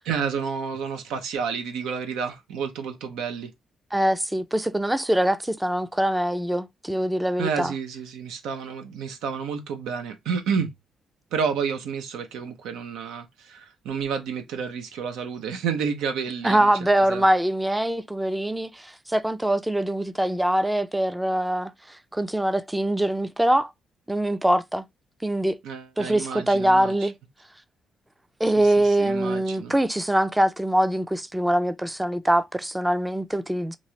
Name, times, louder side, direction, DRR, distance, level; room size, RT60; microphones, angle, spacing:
voice 1, 0.1-3.5 7.4-10.7 11.3-16.7 17.1-17.3 25.6-27.1 28.6-29.7, right 6 dB, 90° right, 0.7 m, -30 dB
voice 2, 3.9-7.7 16.4-23.7 24.1-24.8 25.2-25.6 26.0-27.1 28.4-33.8, right 1 dB, 10° right, 0.4 m, -23 dB
3.0 x 2.5 x 2.8 m
cardioid pair, 90°, 0 cm